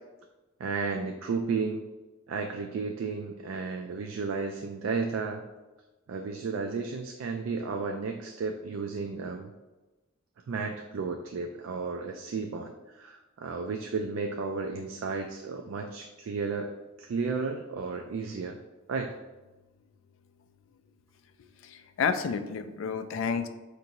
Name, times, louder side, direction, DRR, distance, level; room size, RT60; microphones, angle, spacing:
voice 1, 0.6-1.8 2.3-5.4 6.1-9.5 10.5-16.7 17.0-18.6 18.9-19.1, right 4 dB, 80° right, 4 dB, 0.3 m, -33 dB
voice 2, 21.6-23.5, left 6 dB, 75° left, 9 dB, 0.3 m, -30 dB
5.3 x 2.6 x 2.8 m, 1.1 s
head